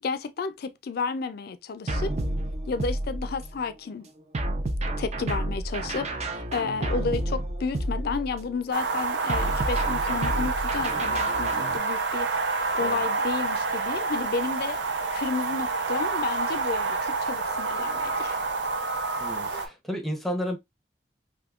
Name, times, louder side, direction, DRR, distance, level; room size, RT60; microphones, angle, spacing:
voice 1, 0.0-2.1 2.7-4.1 5.0-12.3 12.7-14.8 15.1-18.5 19.5-19.6, left 4 dB, 60° left, 0.4 m, -32 dB
sound 1, 1.9-3.6 4.3-8.5 9.3-11.8, right 1 dB, 40° right, 0.5 m, -30 dB
sound 2, 8.7-19.7, right 4 dB, 80° right, 0.6 m, -28 dB
voice 2, 19.2-20.6, equal, ahead, 0.7 m, -32 dB
3.5 x 2.7 x 2.3 m
head